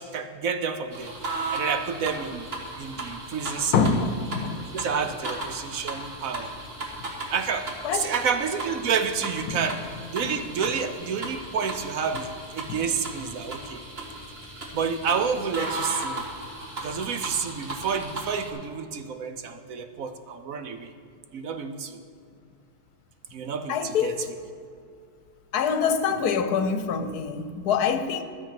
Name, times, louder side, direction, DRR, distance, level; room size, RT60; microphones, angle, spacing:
voice 1, 0.0-2.5 2.8-3.9 4.7-6.5 7.3-13.8 14.7-16.3 16.8-20.9 21.3-22.0 23.3-24.2, right 6 dB, 65° right, 1.1 m, -29 dB
sound 1, 0.9-18.5, right 2 dB, 40° right, 1.7 m, -36 dB
voice 2, 3.7-4.7 7.8-8.1 9.5-9.6 10.2-10.3 12.7-12.8 23.7-24.2 25.5-28.2, left 6 dB, 75° left, 1.3 m, -25 dB
13.0 x 7.1 x 5.8 m
omnidirectional pair, 1.7 m